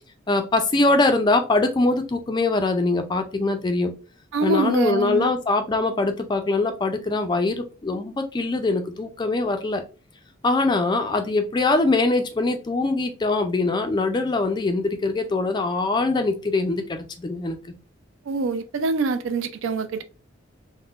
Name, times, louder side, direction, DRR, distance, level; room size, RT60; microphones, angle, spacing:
voice 1, 0.3-3.9 4.4-9.8 10.4-17.6, left 3 dB, 20° left, 0.3 m, -22 dB
voice 2, 4.3-5.3 18.3-20.0, right 4 dB, 70° right, 0.3 m, -24 dB
3.5 x 2.1 x 2.3 m
head